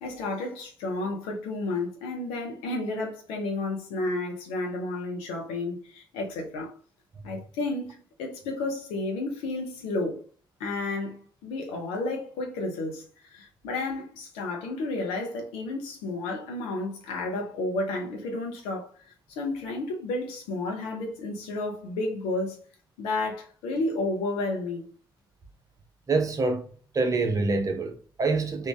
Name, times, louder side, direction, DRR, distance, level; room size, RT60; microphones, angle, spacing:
voice 1, 0.0-6.7 7.2-10.2 10.6-18.9 19.3-22.6 23.0-24.9, left 2 dB, 65° left, 1.0 m, -31 dB
voice 2, 26.1-26.6 26.9-28.7, right 3 dB, 30° right, 0.8 m, -26 dB
3.2 x 2.6 x 3.6 m
figure-of-eight pair, 45°, 11 cm